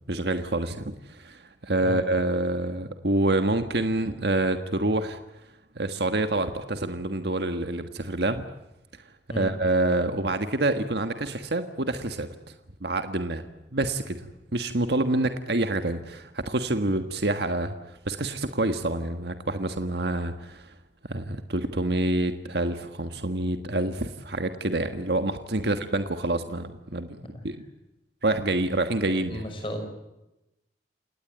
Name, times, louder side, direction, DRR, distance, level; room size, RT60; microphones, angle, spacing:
voice 1, 0.1-5.2 5.7-8.4 9.3-12.5 12.8-13.5 13.7-14.2 14.5-20.7 21.1-27.6 28.2-29.4, right 2 dB, 65° right, 8 dB, 1.5 m, -27 dB
voice 2, 29.1-29.8, equal, 30° left, 5 dB, 6.1 m, -34 dB
29.0 x 18.5 x 9.0 m, 0.94 s
head